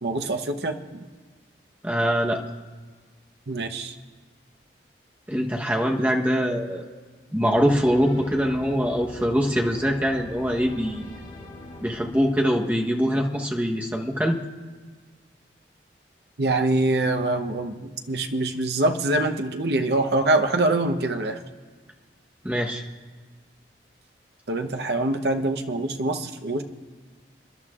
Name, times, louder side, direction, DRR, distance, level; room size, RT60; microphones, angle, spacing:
voice 1, 0.0-1.0 3.5-4.0 16.4-21.4 24.5-26.6, right 2 dB, 65° right, 6 dB, 0.9 m, -24 dB
voice 2, 1.8-2.4 5.3-6.9 7.3-11.1 11.8-14.4 22.4-22.8, equal, 10° right, 0 dB, 1.0 m, -23 dB
sound 1, 7.5-13.0, left 1 dB, 40° left, 3.4 m, -43 dB
28.5 x 11.5 x 2.4 m, 1.5 s
head